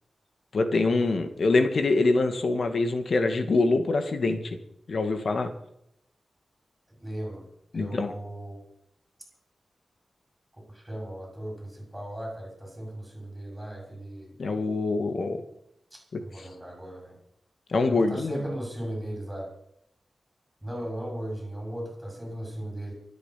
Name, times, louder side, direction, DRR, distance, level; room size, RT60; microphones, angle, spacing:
voice 1, 0.5-4.6 4.9-5.5 7.7-8.1 14.4-15.4 16.1-16.2 17.7-18.4, left 3 dB, 60° left, 7 dB, 2.1 m, -24 dB
voice 2, 7.0-7.5 7.7-8.6 10.5-14.4 15.9-17.2 17.9-19.5 20.6-22.9, right 1 dB, 5° right, 0 dB, 6.3 m, -37 dB
24.5 x 8.6 x 5.9 m, 0.76 s
wide cardioid pair, 135°, 0 cm